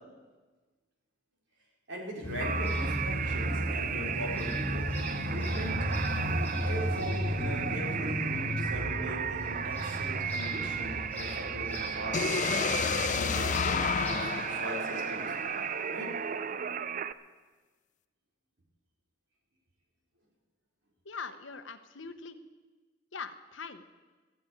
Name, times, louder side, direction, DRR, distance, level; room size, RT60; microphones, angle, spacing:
voice 1, 1.9-5.8 6.6-15.3 15.9-16.1, equal, 70° right, -1 dB, 3.9 m, -40 dB
sound 1, 2.2-14.2, left 1 dB, 10° left, 3.4 m, -35 dB
sound 2, 2.4-17.1, right 7 dB, 40° right, 0.4 m, -35 dB
sound 3, 12.1-16.0, left 6 dB, 40° left, 0.4 m, -31 dB
voice 2, 21.1-22.4 23.1-23.8, left 5 dB, 70° left, 10 dB, 0.9 m, -42 dB
13.5 x 8.9 x 9.6 m, 1.3 s
head